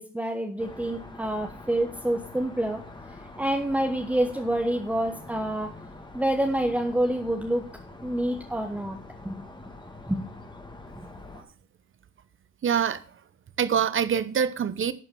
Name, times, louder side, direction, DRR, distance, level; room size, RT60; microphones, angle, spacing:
voice 1, 0.0-2.8 3.4-5.7 6.1-7.7 8.0-9.0 9.2-9.5 10.1-10.2, right 1 dB, 5° right, 3 dB, 1.1 m, -27 dB
sound 1, 0.6-11.4, left 2 dB, 15° left, 1.8 m, -45 dB
voice 2, 12.6-13.0 13.6-14.9, right 7 dB, 40° right, 14 dB, 0.9 m, -25 dB
11.0 x 4.8 x 6.2 m, 0.41 s
cardioid pair, 90°, 30 cm